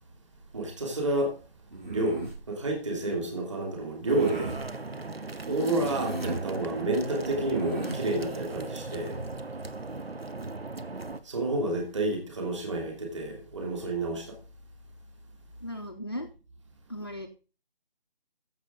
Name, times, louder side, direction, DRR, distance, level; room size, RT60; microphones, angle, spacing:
voice 1, 0.5-1.4 1.9-4.6 5.5-9.2 11.2-14.4, right 2 dB, 30° right, 2.9 m, -30 dB
sound 1, 1.7-2.4 4.0-4.6 5.8-6.5 7.4-8.0, right 1 dB, 55° right, 5.6 m, -36 dB
sound 2, 4.1-11.2, right 3 dB, 75° right, 1.1 m, -37 dB
voice 2, 15.6-16.3 16.9-17.3, equal, 25° left, 0.6 m, -36 dB
12.5 x 7.3 x 3.7 m
figure-of-eight pair, 160°, 30 cm